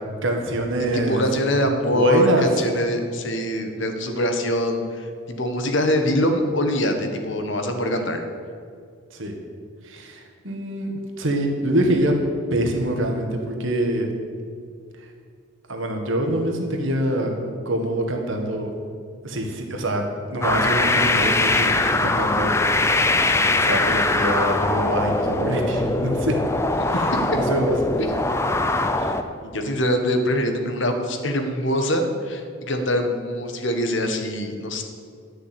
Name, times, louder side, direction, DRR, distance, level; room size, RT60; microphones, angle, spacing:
voice 1, 0.2-1.2 1.9-2.5 9.1-9.3 9.8-12.2 12.5-14.1 15.7-17.4 17.7-18.7 19.2-20.0 20.3-22.6 23.5-26.4 26.9-27.0 27.3-27.8 28.9-29.2, right 1 dB, 65° right, 2 dB, 1.8 m, -24 dB
voice 2, 0.9-8.2 26.8-27.4 28.0-28.1 29.4-34.8, equal, 60° left, 5 dB, 1.3 m, -24 dB
sound 1, 20.4-29.2, left 2 dB, 10° left, 0.5 m, -21 dB
11.0 x 6.6 x 8.4 m, 2.2 s
head